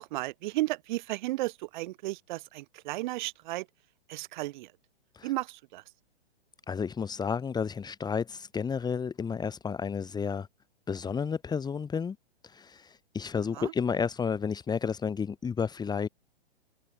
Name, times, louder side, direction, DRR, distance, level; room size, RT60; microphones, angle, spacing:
voice 1, 0.0-3.7 4.1-4.7 5.2-5.8 13.5-13.7, right 18 dB, 45° right, 3.4 m, -34 dB
voice 2, 6.7-10.5 10.9-12.2 12.4-16.1, left 6 dB, 10° left, 3.0 m, -31 dB
figure-of-eight pair, 120°, 33 cm